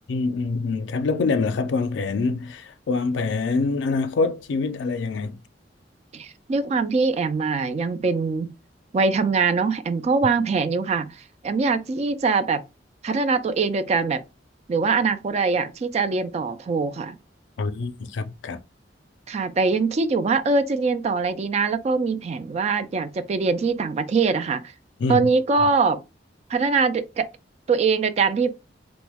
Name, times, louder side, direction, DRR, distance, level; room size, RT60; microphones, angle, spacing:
voice 1, 0.1-5.4 17.6-18.6 25.0-25.3, left 4 dB, 85° left, 0.4 m, -25 dB
voice 2, 6.1-8.5 8.9-11.2 11.4-12.6 13.0-14.2 14.7-17.1 19.3-24.6 25.1-26.0 26.5-27.3 27.7-28.5, right 4 dB, 35° right, 0.3 m, -23 dB
3.0 x 2.1 x 3.4 m
head